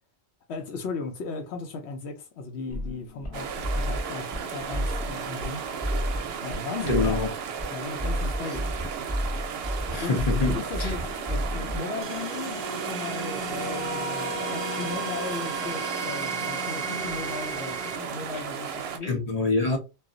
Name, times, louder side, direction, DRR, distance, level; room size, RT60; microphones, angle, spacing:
voice 1, 0.5-5.6 6.4-7.2 7.7-8.8 10.0-19.2, left 4 dB, 80° left, 0.8 m, -36 dB
sound 1, 2.7-11.8, equal, 15° left, 0.9 m, -32 dB
sound 2, 3.3-19.0, right 7 dB, 70° right, 0.7 m, -35 dB
voice 2, 6.9-7.3 9.9-10.9 19.0-19.8, left 3 dB, 45° left, 0.7 m, -26 dB
sound 3, 12.0-18.0, right 3 dB, 45° right, 0.3 m, -33 dB
2.3 x 2.0 x 3.7 m
omnidirectional pair, 1.1 m